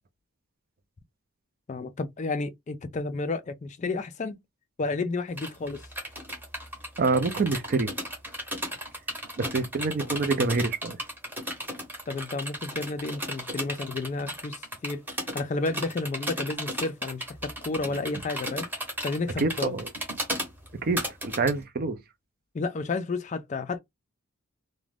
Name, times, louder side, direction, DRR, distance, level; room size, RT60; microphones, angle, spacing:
voice 1, 1.7-4.4 4.8-5.8 12.1-15.0 15.3-18.7 19.0-19.7 22.5-23.8, left 3 dB, 35° left, 0.3 m, -31 dB
sound 1, 5.4-21.5, equal, 10° right, 0.8 m, -35 dB
voice 2, 7.0-7.9 9.4-11.0 19.4-19.9 20.8-22.0, right 3 dB, 40° right, 0.4 m, -26 dB
2.4 x 2.1 x 3.2 m
head